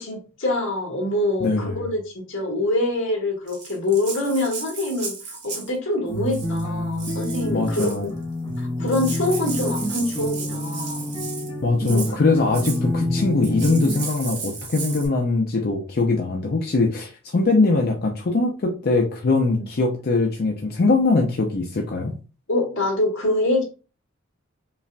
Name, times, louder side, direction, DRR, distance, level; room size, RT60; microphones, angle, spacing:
voice 1, 0.0-8.1 8.6-11.1 11.9-12.0 22.5-23.6, left 2 dB, 60° left, 0 dB, 1.5 m, -25 dB
voice 2, 1.4-1.8 7.5-8.1 11.6-22.1, left 3 dB, 45° left, 2 dB, 0.5 m, -22 dB
Rattle (instrument), 3.5-5.8 6.3-6.6 7.0-8.0 8.6-8.7 8.9-11.5 11.8-12.1 12.5-12.8 13.4-15.1, right 5 dB, 50° right, 1.1 m, -35 dB
sound 1, 6.1-14.1, left 1 dB, 20° left, 1.1 m, -28 dB
5.5 x 2.4 x 2.2 m, 0.34 s
head